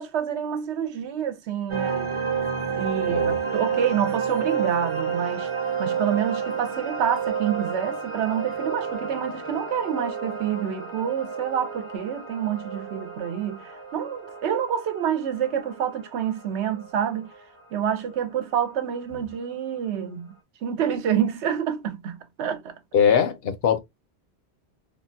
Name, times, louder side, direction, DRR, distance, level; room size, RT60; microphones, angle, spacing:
voice 1, 0.0-2.1 2.7-5.5 5.8-17.3 17.7-20.3 20.6-22.7, right 9 dB, 85° right, 0.9 m, -27 dB
sound 1, 1.7-18.7, right 6 dB, 35° right, 0.7 m, -30 dB
voice 2, 3.1-3.4 22.9-23.8, left 7 dB, 70° left, 0.8 m, -21 dB
3.6 x 2.2 x 2.5 m
omnidirectional pair, 1.1 m